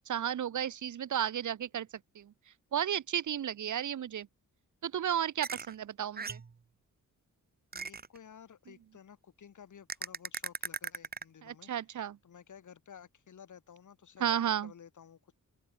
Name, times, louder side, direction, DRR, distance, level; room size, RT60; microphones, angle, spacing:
voice 1, 0.0-1.9 2.1-2.3 2.7-4.3 4.8-6.4 11.4-12.2 14.2-14.7, right 9 dB, 65° right, 0.9 m, -33 dB
sound 1, 5.4-5.7 6.2-6.5 7.7-8.2 9.9-11.2, right 5 dB, 30° right, 1.1 m, -38 dB
voice 2, 7.7-11.7 12.2-14.3 14.6-15.3, left 8 dB, 65° left, 3.5 m, -54 dB
open air
wide cardioid pair, 140°, 32 cm